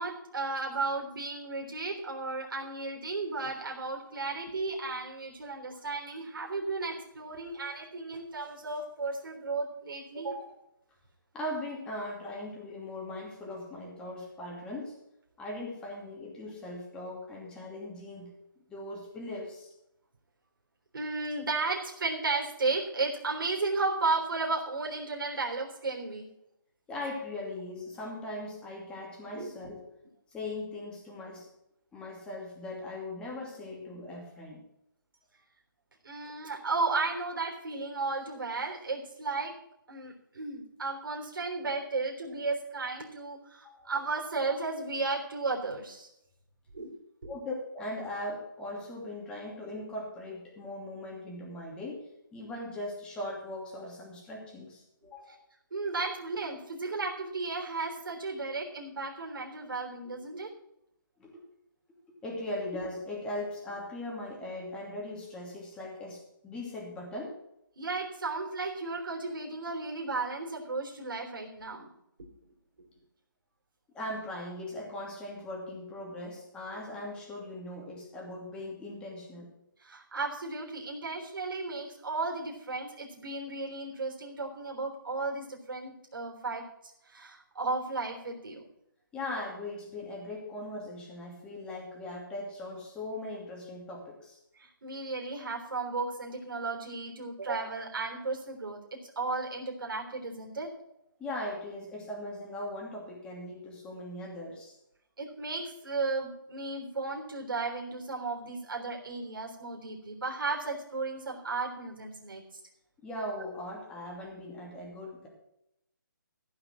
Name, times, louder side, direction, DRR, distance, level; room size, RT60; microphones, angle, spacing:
voice 1, 0.0-10.5 20.9-26.3 29.3-29.5 36.0-39.5 39.9-46.1 46.7-46.9 47.2-47.3 55.7-60.5 67.8-71.9 79.8-88.6 94.5-100.7 105.2-112.4, right 3 dB, 75° right, 1 dB, 3.6 m, -34 dB
voice 2, 11.3-14.9 15.4-18.3 18.7-19.7 26.9-29.8 30.3-31.5 31.9-34.6 43.6-43.9 47.3-52.0 52.3-55.4 61.2-61.4 62.2-67.4 73.9-79.5 89.1-94.4 97.8-97.9 101.2-104.8 113.0-115.3, left 1 dB, 10° left, -3 dB, 2.6 m, -39 dB
15.0 x 5.9 x 7.5 m, 0.81 s
hypercardioid pair, 165°, 11 cm